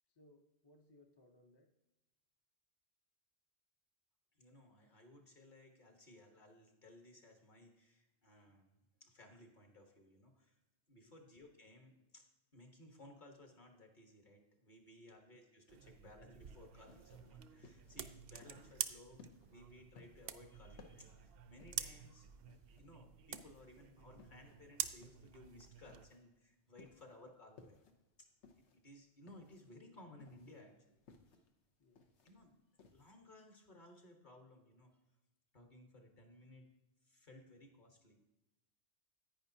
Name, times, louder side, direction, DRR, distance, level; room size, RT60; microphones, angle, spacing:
voice 1, 0.1-1.7 8.5-8.6 11.0-11.2 15.0-15.2 15.8-16.0 26.9-27.0 31.8-32.0, left 1 dB, 25° left, 2 dB, 0.6 m, -67 dB
voice 2, 4.4-10.6 10.9-12.2 12.5-22.3 22.8-27.8 28.6-31.0 32.2-32.6 32.9-34.9 35.5-36.6 37.0-38.2, left 1 dB, 45° left, 3 dB, 1.4 m, -60 dB
sound 1, 15.7-26.1, right 9 dB, 65° right, 0.7 m, -48 dB
sound 2, 16.8-33.2, left 5 dB, 80° left, 1.2 m, -64 dB
10.5 x 9.2 x 2.7 m, 1.0 s
omnidirectional pair, 1.2 m